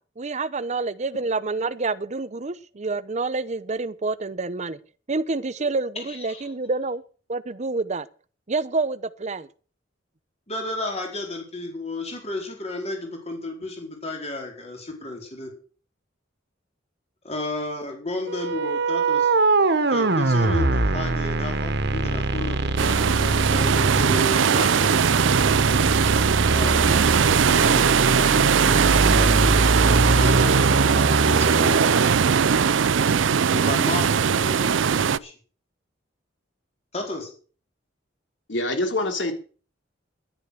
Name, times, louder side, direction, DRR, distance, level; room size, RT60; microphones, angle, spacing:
voice 1, 0.0-4.8 5.1-7.0 7.3-8.1 8.5-9.5, right 3 dB, 40° right, 0.8 m, -28 dB
voice 2, 5.9-6.5 10.5-15.5 17.2-19.3 19.9-24.9 26.4-26.9 27.5-29.5 30.1-31.8 33.5-35.3 36.9-37.3, left 2 dB, 35° left, 4.5 m, -33 dB
sound 1, 18.3-32.1, right 2 dB, 60° right, 1.3 m, -23 dB
sound 2, 22.8-35.2, right 7 dB, 90° right, 0.5 m, -20 dB
voice 3, 38.5-39.3, left 2 dB, 70° left, 3.2 m, -25 dB
11.0 x 10.5 x 6.6 m
head